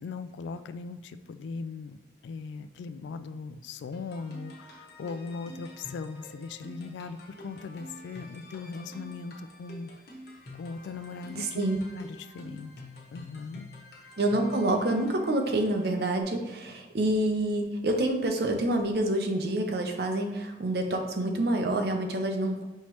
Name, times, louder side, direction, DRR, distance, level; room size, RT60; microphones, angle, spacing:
voice 1, 0.0-2.0 2.2-9.9 10.6-11.6 11.9-12.7 13.1-13.7, left 4 dB, 80° left, 11 dB, 0.3 m, -39 dB
sound 1, 3.9-16.2, left 1 dB, 60° left, 1.0 m, -48 dB
voice 2, 11.4-11.8 14.2-22.6, right 1 dB, 60° right, 3 dB, 0.6 m, -27 dB
5.6 x 3.1 x 3.0 m, 1.2 s
head